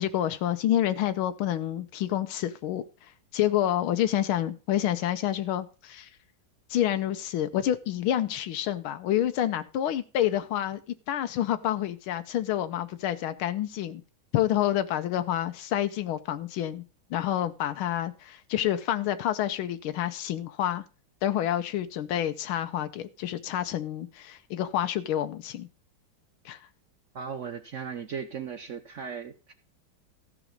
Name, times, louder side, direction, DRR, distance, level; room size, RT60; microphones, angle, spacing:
voice 1, 0.0-6.1 6.7-10.8 11.1-14.0 14.3-16.8 17.1-20.8 21.2-25.7 26.4-26.6, left 11 dB, 90° left, 9 dB, 1.6 m, -28 dB
voice 2, 27.1-29.5, right 6 dB, 75° right, 10 dB, 0.7 m, -37 dB
14.5 x 6.1 x 5.1 m, 0.35 s
omnidirectional pair, 2.2 m